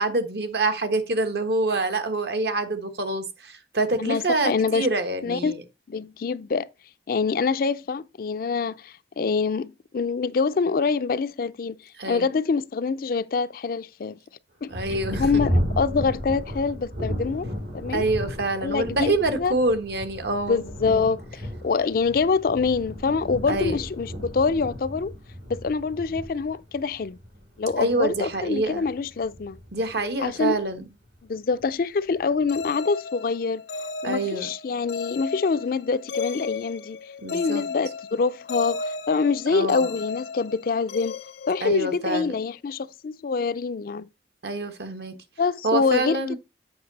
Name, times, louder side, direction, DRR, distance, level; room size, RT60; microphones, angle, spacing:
voice 1, 0.0-5.6 12.0-12.3 14.7-15.4 17.9-20.6 23.5-23.8 27.8-28.8 29.7-30.8 34.0-34.5 37.2-37.6 39.5-39.8 41.6-42.3 44.4-45.1 45.6-46.4, right 2 dB, 65° right, 1.2 m, -26 dB
voice 2, 4.0-4.9 5.2-5.5 5.9-6.7 7.1-11.8 12.1-14.2 14.6-14.7 15.2-18.0 18.6-19.5 20.5-25.1 25.5-27.2 27.6-29.6 30.2-30.6 31.3-37.0 37.3-41.2 41.5-44.1 45.4-46.4, left 4 dB, 55° left, 0.4 m, -25 dB
Thunder, 14.7-30.8 31.5-31.6 32.2-32.6, equal, 90° right, 4.5 m, -33 dB
sound 1, 32.5-42.3, left 4 dB, 90° left, 0.9 m, -35 dB
7.8 x 5.4 x 4.0 m
head